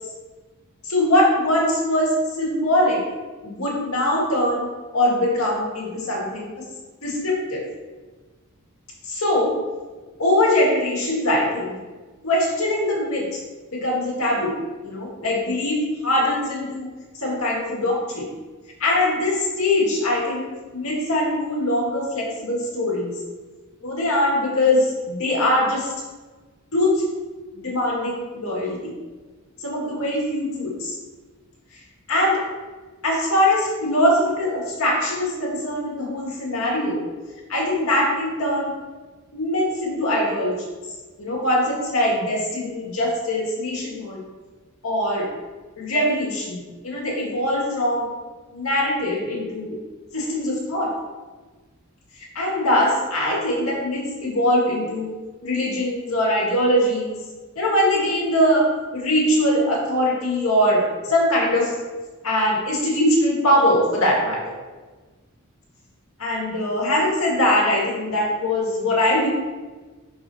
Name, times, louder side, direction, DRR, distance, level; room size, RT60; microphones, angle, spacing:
voice 1, 0.8-3.0 3.4-6.5 7.0-7.6 9.0-9.6 10.2-11.7 12.2-13.4 13.7-16.9 17.2-18.3 18.8-20.4 20.7-23.2 23.8-25.9 26.7-27.0 27.5-28.9 29.6-31.0 32.1-32.4 33.0-37.1 37.5-38.7 39.3-40.6 41.2-44.2 44.8-45.3 45.8-48.1 48.5-49.8 50.1-50.9 52.3-55.1 55.4-57.2 57.6-61.8 62.2-64.4 66.2-69.3, left 1 dB, 75° left, -3 dB, 2.1 m, -22 dB
11.0 x 4.4 x 2.8 m, 1.3 s
head